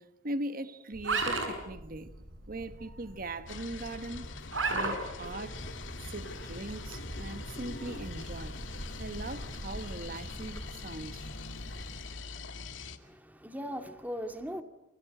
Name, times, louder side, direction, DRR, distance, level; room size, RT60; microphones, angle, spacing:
voice 1, 0.0-2.1 2.5-4.3 4.7-5.6 6.0-8.6 9.0-11.3, right 2 dB, 50° right, 1.4 m, -40 dB
sound 1, 0.9-10.7, right 3 dB, 85° right, 7.2 m, -38 dB
sound 2, 3.5-13.0, left 3 dB, 80° left, 2.2 m, -44 dB
sound 3, 5.5-12.2, equal, 20° left, 3.8 m, -48 dB
voice 2, 13.0-14.6, equal, 10° right, 2.4 m, -39 dB
28.0 x 25.5 x 7.8 m
head